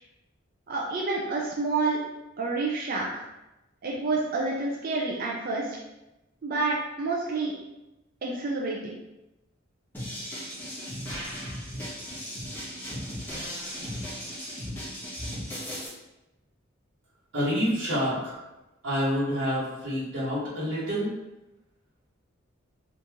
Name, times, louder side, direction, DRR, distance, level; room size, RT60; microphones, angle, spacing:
voice 1, 0.7-2.0 2.4-3.3 3.8-5.8 6.4-7.5 8.2-8.8, right 3 dB, 45° right, -2 dB, 0.4 m, -28 dB
sound 1, 9.9-15.9, equal, 10° left, 1.1 m, -36 dB
voice 2, 17.3-18.4 18.8-21.1, equal, 65° right, -9 dB, 1.4 m, -27 dB
2.9 x 2.6 x 3.5 m, 0.96 s
head